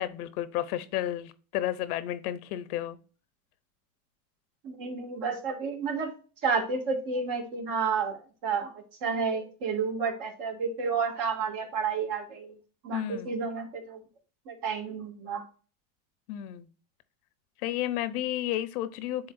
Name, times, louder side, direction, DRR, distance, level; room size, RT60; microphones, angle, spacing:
voice 1, 0.0-3.0 12.9-13.3 16.3-16.7 17.6-19.3, left 12 dB, 85° left, 0.8 m, -32 dB
voice 2, 4.6-6.1 6.4-8.7 9.0-12.6 12.8-14.0 14.5-15.4, right 5 dB, 65° right, 2.4 m, -31 dB
9.8 x 3.7 x 2.6 m
supercardioid pair, 110°, 43 cm